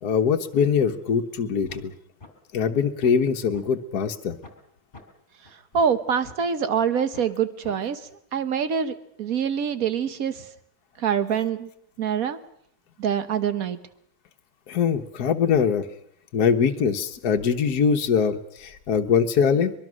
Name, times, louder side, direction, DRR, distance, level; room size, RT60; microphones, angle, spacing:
voice 1, 0.0-1.9 2.5-4.4 14.7-15.9 16.3-19.7, left 6 dB, 65° left, 4 dB, 1.6 m, -22 dB
sound 1, 1.7-1.9 2.2-2.3 2.7-3.6 4.0-4.1 4.4-4.6 4.9-5.0 5.4-6.4 6.8-6.9 7.1-7.3 7.6-7.8, left 3 dB, 30° left, 3.1 m, -45 dB
voice 2, 5.7-8.0 8.3-10.5 11.0-11.7 12.0-12.4 13.0-13.8, right 7 dB, 55° right, 11 dB, 1.6 m, -25 dB
23.0 x 22.0 x 6.3 m, 0.71 s
omnidirectional pair, 1.9 m